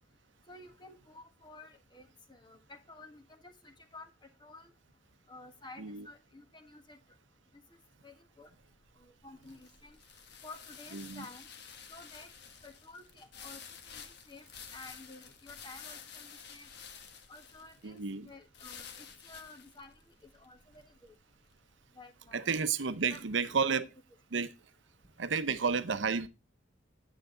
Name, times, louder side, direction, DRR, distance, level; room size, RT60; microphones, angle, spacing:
voice 1, 0.5-4.1 4.4-4.7 5.3-7.0 8.0-8.5 9.0-10.0 10.4-11.5 11.9-12.3 12.6-13.6 13.9-14.4 14.7-16.7 17.3-19.9 20.3-20.8 22.0-22.5 23.0-23.8, left 2 dB, 25° left, 1.4 m, -52 dB
sound 1, 8.4-21.7, left 7 dB, 55° left, 1.2 m, -51 dB
voice 2, 10.9-11.3 17.8-18.3 22.3-23.9 24.3-24.5 25.2-26.3, right 5 dB, 70° right, 0.7 m, -31 dB
9.4 x 8.0 x 3.7 m
head